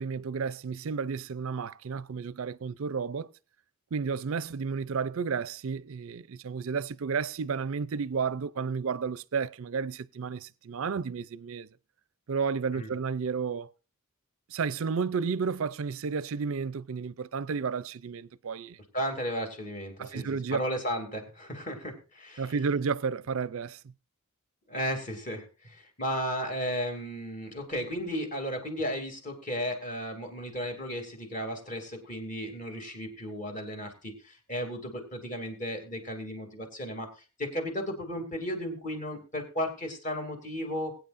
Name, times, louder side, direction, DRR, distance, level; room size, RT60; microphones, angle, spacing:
voice 1, 0.0-3.3 3.9-11.7 12.3-13.7 14.5-18.8 20.0-20.6 22.4-23.8, right 5 dB, 60° right, 0.4 m, -32 dB
voice 2, 18.9-22.5 24.7-37.1 37.4-40.9, equal, 35° left, 2.6 m, -34 dB
21.0 x 9.1 x 2.5 m
head